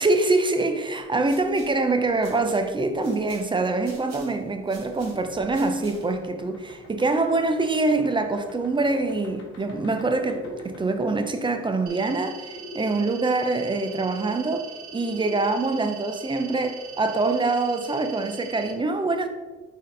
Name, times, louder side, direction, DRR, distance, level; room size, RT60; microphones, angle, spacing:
voice 1, 0.0-14.7 14.9-19.3, right 3 dB, 15° right, 0.4 m, -24 dB
sound 1, 1.0-6.3, right 2 dB, 60° right, 1.4 m, -50 dB
sound 2, 4.9-12.8 14.1-15.4, left 1 dB, 80° left, 1.2 m, -47 dB
sound 3, 11.9-18.7, right 7 dB, 85° right, 1.0 m, -42 dB
4.4 x 3.5 x 3.2 m
cardioid pair, 90°, 30 cm